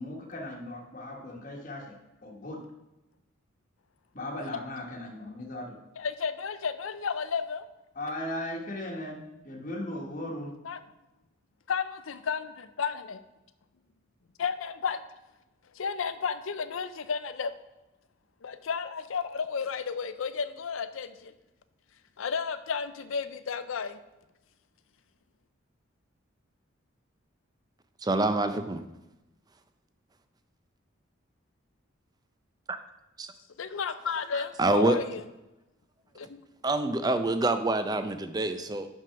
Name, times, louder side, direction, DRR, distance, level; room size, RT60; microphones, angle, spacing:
voice 1, 0.0-1.9 2.2-2.6 4.1-5.8 7.9-10.5, left 1 dB, 40° left, 0 dB, 1.3 m, -37 dB
voice 2, 6.0-7.7 10.6-10.8 11.7-13.2 14.4-15.0 15.7-17.5 18.4-21.3 22.2-24.0 33.6-35.2 36.2-36.4, left 6 dB, 80° left, 12 dB, 0.5 m, -32 dB
voice 3, 28.0-28.8 32.7-32.8 33.2-33.3 34.6-35.0 36.6-38.9, right 2 dB, 20° right, 9 dB, 0.4 m, -26 dB
6.0 x 5.4 x 5.7 m, 0.96 s
head